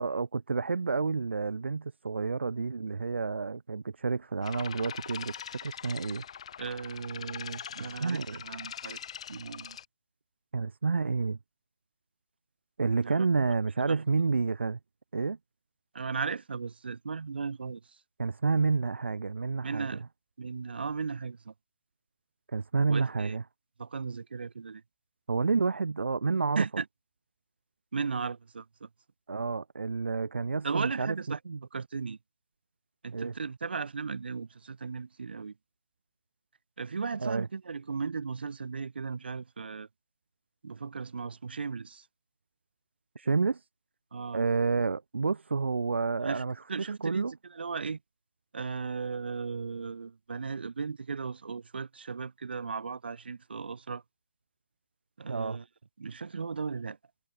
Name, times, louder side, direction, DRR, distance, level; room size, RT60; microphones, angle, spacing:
voice 1, 0.0-6.2 8.0-8.4 10.5-11.4 12.8-14.8 15.1-15.4 18.2-20.0 22.5-23.4 25.3-26.6 29.3-31.6 33.1-33.3 37.2-37.5 43.2-43.7 44.3-47.3 55.2-55.6, right 4 dB, 75° right, 3.7 m, -29 dB
sound 1, 4.4-9.8, left 8 dB, 30° left, 4.9 m, -43 dB
voice 2, 6.6-9.0 9.3-9.8 13.0-13.3 13.9-14.0 15.9-17.8 19.6-20.0 20.4-21.5 22.9-23.4 23.8-24.8 26.6-26.8 27.9-28.9 30.6-31.4 31.7-32.2 33.0-35.5 36.8-39.9 40.6-42.1 44.1-44.4 46.2-46.4 46.7-48.0 48.5-54.0 55.2-55.6 56.0-57.0, right 5 dB, 60° right, 5.5 m, -36 dB
hypercardioid pair, 175°, 6 cm